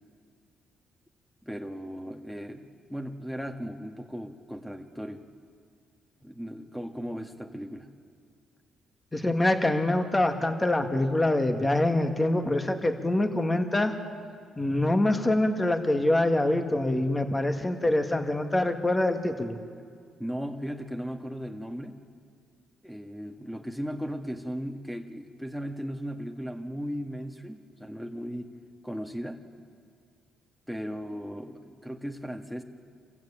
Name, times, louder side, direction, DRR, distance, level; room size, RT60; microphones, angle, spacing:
voice 1, 1.4-5.2 6.2-7.9 20.2-22.0 22.8-28.5 28.8-29.4 30.7-32.6, equal, ahead, 6 dB, 1.8 m, -37 dB
voice 2, 9.1-13.9 14.6-19.6, left 1 dB, 15° left, 6 dB, 2.1 m, -25 dB
26.5 x 15.5 x 8.8 m, 2.1 s
cardioid pair, 90°, 0 cm